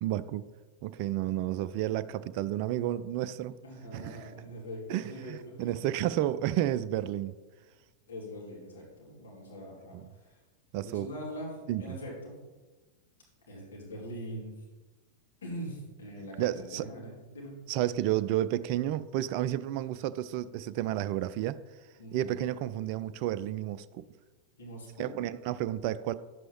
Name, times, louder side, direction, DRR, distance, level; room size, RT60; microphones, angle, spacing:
voice 1, 0.0-0.4 0.8-3.5 3.9-4.3 4.9-7.4 9.9-10.1 10.7-11.1 11.7-12.0 16.4-16.8 17.7-21.6 22.1-24.0 25.0-26.1, right 13 dB, 45° right, 14 dB, 0.3 m, -31 dB
voice 2, 3.6-5.9 8.1-10.4 10.8-12.4 13.5-14.5 15.4-17.6 22.0-22.4 24.6-25.2, equal, 65° left, -4 dB, 2.7 m, -43 dB
11.0 x 7.9 x 3.0 m, 1.2 s
figure-of-eight pair, 90°, 0 cm